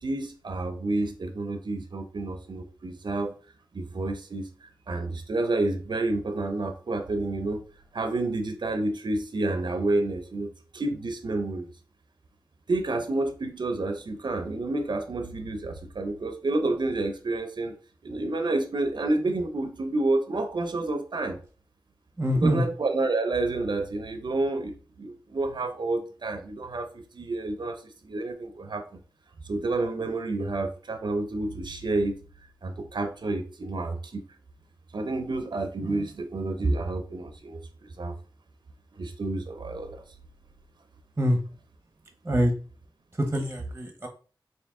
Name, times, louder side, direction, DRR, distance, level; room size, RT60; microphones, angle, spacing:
voice 1, 0.0-3.3 3.7-7.6 7.9-11.7 12.7-17.7 18.0-21.4 22.3-29.0 29.4-32.2 32.6-34.2 34.9-38.2 39.0-40.0, right 2 dB, 65° right, 6 dB, 0.5 m, -29 dB
voice 2, 22.2-22.6 41.2-41.4 42.2-42.5 43.2-44.1, equal, 25° right, 3 dB, 0.8 m, -24 dB
3.5 x 2.6 x 3.5 m, 0.38 s
wide cardioid pair, 55°, 8 cm